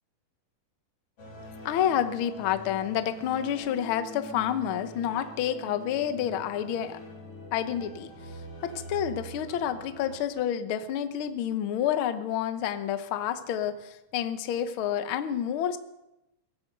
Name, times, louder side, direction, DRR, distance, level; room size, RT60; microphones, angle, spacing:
sound 1, 1.2-10.2, left 1 dB, 45° left, 3.9 m, -44 dB
voice 1, 1.6-7.0 7.5-8.1 8.6-15.8, left 9 dB, 80° left, 10 dB, 1.1 m, -29 dB
19.0 x 11.5 x 6.6 m, 0.91 s
omnidirectional pair, 3.8 m